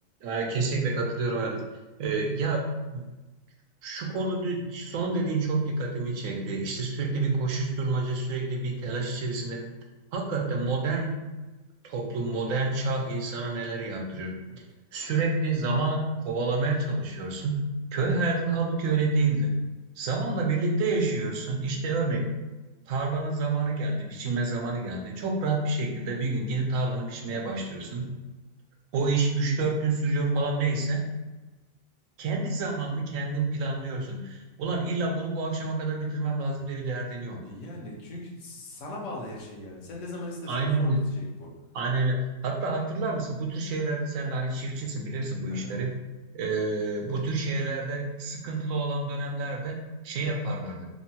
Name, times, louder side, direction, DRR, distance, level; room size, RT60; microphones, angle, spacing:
voice 1, 0.2-1.6 2.0-3.1 3.8-9.6 10.1-11.2 11.8-14.3 14.9-17.6 17.9-19.5 20.0-22.2 22.9-28.1 28.9-31.1 32.2-37.4 40.5-41.0 41.7-45.9 46.3-50.9, right 3 dB, 80° right, 1 dB, 1.0 m, -28 dB
voice 2, 37.4-41.5 45.5-45.8, left 1 dB, 70° left, -2 dB, 0.9 m, -39 dB
3.0 x 2.1 x 2.7 m, 1.2 s
omnidirectional pair, 1.4 m